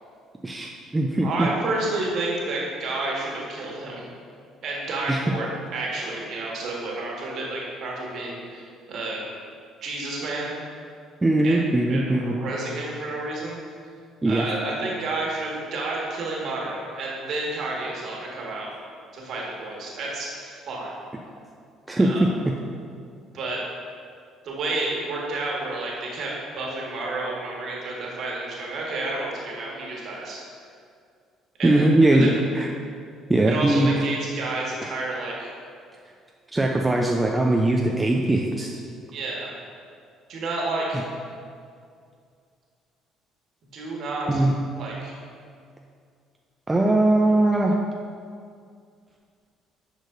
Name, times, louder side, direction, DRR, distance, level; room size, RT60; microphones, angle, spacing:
voice 1, 0.4-1.5 5.1-5.2 11.2-12.4 14.2-14.5 21.9-22.3 31.6-32.7 33.3-33.9 34.8-34.9 36.5-38.8 44.3-44.5 46.7-47.8, right 1 dB, 15° right, 0 dB, 0.6 m, -20 dB
voice 2, 1.2-4.1 4.6-9.3 9.8-10.5 11.4-11.6 11.9-13.6 14.2-18.7 19.1-20.9 21.9-22.2 23.3-23.6 24.4-30.4 31.6-32.4 33.4-35.5 39.1-39.5 40.3-41.0 43.7-44.4 44.8-45.1, right 2 dB, 55° right, -3 dB, 1.7 m, -30 dB
10.0 x 6.4 x 2.6 m, 2.2 s
figure-of-eight pair, 50°, 0 cm